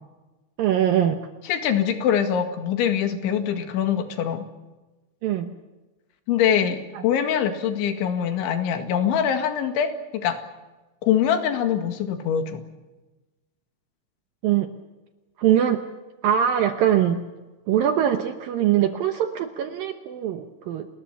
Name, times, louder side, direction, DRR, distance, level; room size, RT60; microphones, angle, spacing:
voice 1, 0.6-1.2 5.2-5.5 14.4-14.7 15.4-15.8 16.2-17.2 17.7-20.9, right 10 dB, 70° right, 7 dB, 2.2 m, -22 dB
voice 2, 1.5-4.5 6.3-10.4 11.0-12.6, left 8 dB, 85° left, 7 dB, 4.3 m, -23 dB
30.0 x 21.0 x 7.1 m, 1.1 s
omnidirectional pair, 5.3 m